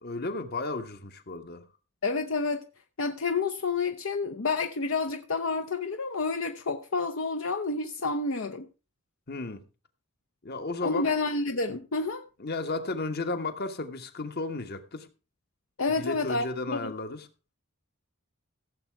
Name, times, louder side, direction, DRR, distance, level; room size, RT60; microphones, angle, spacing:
voice 1, 0.0-1.7 9.3-9.6 10.4-11.1 12.4-15.1 16.0-17.3, left 3 dB, 50° left, 1.3 m, -33 dB
voice 2, 2.0-2.6 3.0-8.7 10.8-12.2 15.8-16.5 16.7-16.9, left 4 dB, 65° left, 0.8 m, -29 dB
15.5 x 7.6 x 4.6 m
head